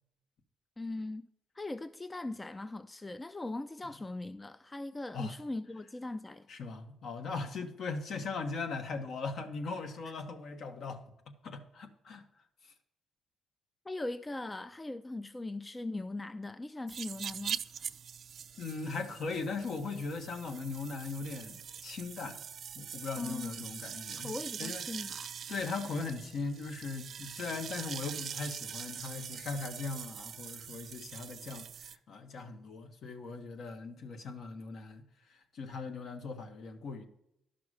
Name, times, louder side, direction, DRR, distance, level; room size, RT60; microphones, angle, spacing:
voice 1, 0.8-1.3 1.6-6.5 13.9-17.6 23.2-23.7 24.2-25.4, left 2 dB, 20° left, 0.4 m, -40 dB
voice 2, 6.5-12.2 18.6-22.4 22.7-24.3 24.6-24.8 25.5-37.0, left 4 dB, 65° left, 1.3 m, -39 dB
sound 1, 16.9-32.0, right 8 dB, 55° right, 0.4 m, -43 dB
11.5 x 5.9 x 4.9 m
cardioid pair, 90°, 0 cm